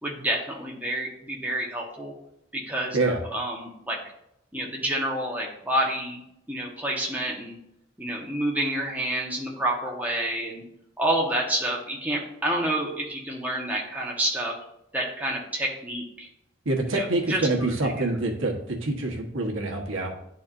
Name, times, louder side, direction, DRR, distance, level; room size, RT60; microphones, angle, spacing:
voice 1, 0.0-2.1 2.5-4.0 4.5-6.2 6.5-7.6 8.0-10.6 11.0-14.6 14.9-16.3 16.9-17.4 17.8-18.1, right 1 dB, 10° right, -2 dB, 1.1 m, -29 dB
voice 2, 16.6-20.2, right 2 dB, 75° right, 0 dB, 1.2 m, -26 dB
10.5 x 4.2 x 2.5 m, 0.78 s
head